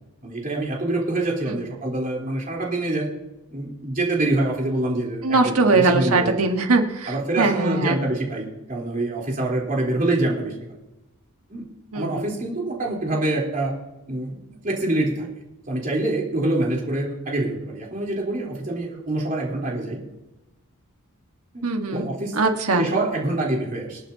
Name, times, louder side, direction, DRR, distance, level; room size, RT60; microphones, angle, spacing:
voice 1, 0.2-3.1 3.5-6.4 7.1-10.5 11.5-11.7 11.9-13.7 14.1-15.3 15.7-20.0 21.5-22.4 22.8-24.0, right 2 dB, 40° right, -3 dB, 3.6 m, -25 dB
voice 2, 5.2-8.0 11.9-12.3 21.6-22.9, right 3 dB, 75° right, 4 dB, 1.5 m, -21 dB
27.0 x 9.1 x 2.8 m, 0.96 s
head